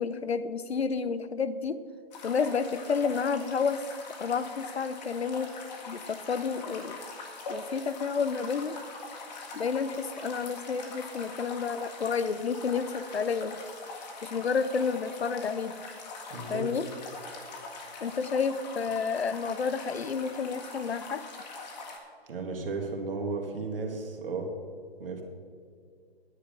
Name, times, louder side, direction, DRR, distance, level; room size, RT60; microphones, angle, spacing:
voice 1, 0.0-1.8 2.2-3.9 4.2-5.5 5.9-7.0 7.5-8.8 9.5-13.6 14.2-15.7 16.5-16.8 18.0-21.2, left 5 dB, 85° left, 13 dB, 0.7 m, -30 dB
sound 1, 2.1-22.0, left 3 dB, 45° left, 1.9 m, -43 dB
voice 2, 16.3-16.7 22.3-24.5 25.0-25.2, right 3 dB, 65° right, 3 dB, 1.9 m, -34 dB
10.0 x 8.8 x 5.2 m, 2.2 s
figure-of-eight pair, 140°, 31 cm